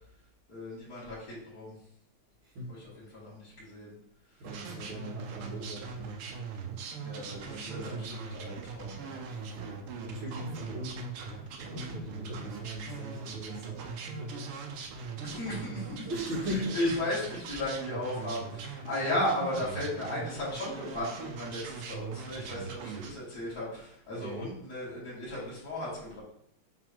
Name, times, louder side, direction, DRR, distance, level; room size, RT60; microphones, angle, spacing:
voice 1, 0.5-1.7 2.7-3.9 7.0-9.3 15.2-16.1 16.4-26.2, left 1 dB, 40° left, -8 dB, 3.1 m, -35 dB
voice 2, 4.4-6.1 7.5-8.2 9.3-14.6 16.0-16.8 19.1-19.2 24.1-24.5, equal, 65° right, -8 dB, 2.5 m, -39 dB
sound 1, 4.4-23.1, right 5 dB, 90° right, 1.7 m, -41 dB
5.8 x 3.9 x 4.5 m, 0.75 s
omnidirectional pair, 2.4 m